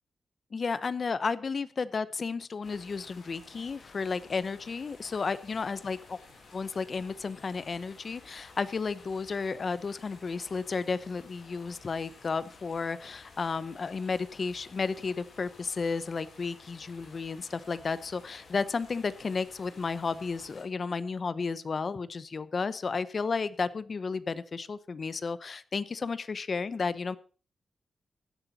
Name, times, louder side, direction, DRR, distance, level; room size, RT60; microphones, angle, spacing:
voice 1, 0.5-6.2 6.5-27.2, left 4 dB, 40° left, 15 dB, 0.8 m, -33 dB
sound 1, 2.6-20.6, left 3 dB, 60° left, 6.8 m, -54 dB
16.5 x 11.0 x 4.1 m, 0.39 s
wide cardioid pair, 155°, 0 cm